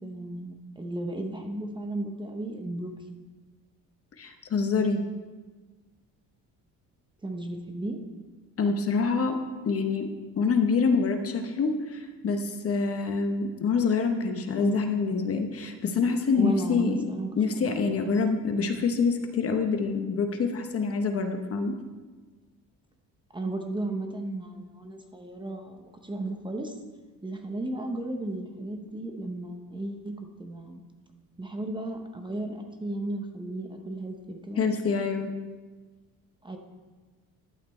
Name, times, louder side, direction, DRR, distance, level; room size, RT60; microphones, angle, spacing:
voice 1, 0.0-2.9 7.2-8.0 14.6-14.8 16.4-17.3 17.6-17.8 23.3-26.7 27.2-30.1 30.4-30.8 31.4-34.6 36.4-36.6, right 1 dB, 15° right, 4 dB, 0.8 m, -34 dB
voice 2, 4.2-5.1 8.6-9.4 9.6-10.1 10.4-17.1 17.4-21.7 34.6-35.3, left 4 dB, 40° left, 6 dB, 0.9 m, -26 dB
11.5 x 6.7 x 4.3 m, 1.3 s
cardioid pair, 130°, 35 cm